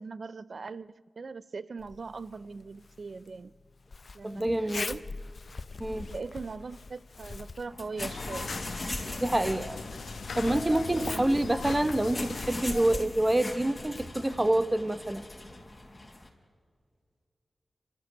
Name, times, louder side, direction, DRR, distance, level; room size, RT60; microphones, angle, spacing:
voice 1, 0.0-3.5 4.1-5.0 6.1-8.5 10.9-11.3, right 4 dB, 65° right, 0.6 m, -40 dB
Zipper (clothing), 1.8-15.3, left 4 dB, 60° left, 0.8 m, -45 dB
voice 2, 4.2-4.8 5.8-6.1 9.2-9.8 10.3-15.2, right 1 dB, 25° right, 1.3 m, -27 dB
sound 1, 7.7-16.3, left 2 dB, 25° left, 4.6 m, -41 dB
sound 2, 8.0-13.0, left 4 dB, 80° left, 1.2 m, -39 dB
29.5 x 13.5 x 8.3 m
cardioid pair, 40°, 0 cm